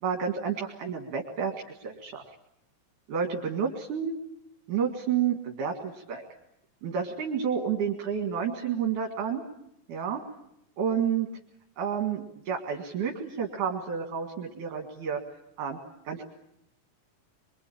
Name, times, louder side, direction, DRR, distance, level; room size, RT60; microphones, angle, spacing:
voice 1, 0.0-2.2 3.1-4.2 4.7-6.2 6.8-9.4 9.9-10.2 10.8-11.3 11.8-15.2 15.6-15.8 16.1-16.2, right 7 dB, 65° right, 2 dB, 3.4 m, -30 dB
24.5 x 24.5 x 8.7 m, 0.80 s
omnidirectional pair, 4.0 m